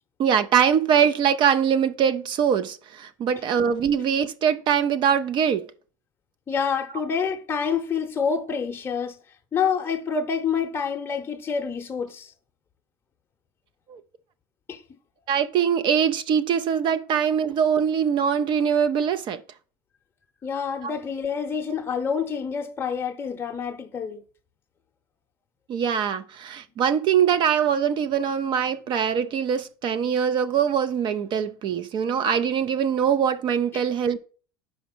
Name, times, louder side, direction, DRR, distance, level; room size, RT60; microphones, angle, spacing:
voice 1, 0.2-5.6 13.9-14.0 15.3-19.4 25.7-34.2, right 8 dB, 45° right, 0.6 m, -22 dB
voice 2, 6.5-9.2 9.5-12.3 14.7-14.8 20.4-24.2 33.7-33.9, left 6 dB, 20° left, 0.8 m, -27 dB
5.1 x 5.0 x 6.0 m
supercardioid pair, 105°, 12 cm